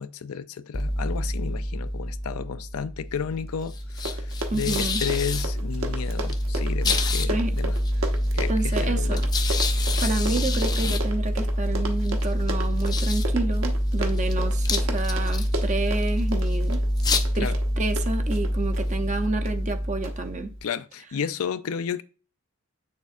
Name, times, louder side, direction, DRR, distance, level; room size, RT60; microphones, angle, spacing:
voice 1, 0.0-7.8 8.3-9.3 17.4-17.6 20.6-22.0, left 7 dB, 75° left, 0.4 m, -32 dB
sound 1, 0.7-20.6, left 1 dB, 20° left, 0.4 m, -26 dB
Run, 3.6-3.7 3.9-18.9 19.5-19.7 20.0-20.1, right 1 dB, 60° right, 0.9 m, -34 dB
voice 2, 4.5-5.0 7.3-7.5 8.5-9.2 10.0-16.8 17.3-17.5 17.8-20.5, right 3 dB, 30° right, 0.6 m, -29 dB
8.0 x 6.5 x 2.5 m
head